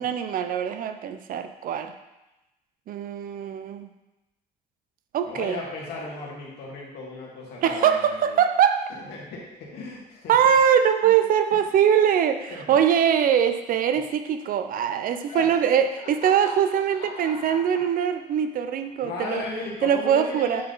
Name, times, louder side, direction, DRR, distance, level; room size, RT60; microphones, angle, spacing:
voice 1, 0.0-1.9 2.9-3.9 5.1-5.6 7.6-8.8 10.3-19.4 19.8-20.6, right 8 dB, 55° right, 9 dB, 0.6 m, -22 dB
voice 2, 5.2-8.4 9.1-10.3 12.5-12.8 15.2-15.6 16.0-16.5 16.9-17.6 19.0-20.6, left 3 dB, 75° left, -4 dB, 2.1 m, -36 dB
8.6 x 3.9 x 4.0 m, 1.0 s
cardioid pair, 110°, 17 cm